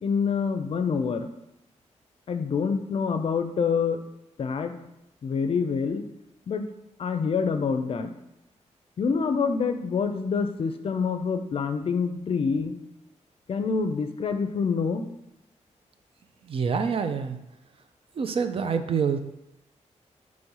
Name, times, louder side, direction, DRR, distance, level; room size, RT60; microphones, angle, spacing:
voice 1, 0.0-1.3 2.3-4.0 4.4-4.7 5.2-6.0 6.5-6.7 7.0-8.1 9.0-12.8 13.5-15.1, left 5 dB, 50° left, 8 dB, 0.5 m, -26 dB
voice 2, 16.5-17.4 18.2-19.2, right 6 dB, 50° right, 9 dB, 0.5 m, -26 dB
6.0 x 3.1 x 5.5 m, 0.87 s
wide cardioid pair, 165°, 12 cm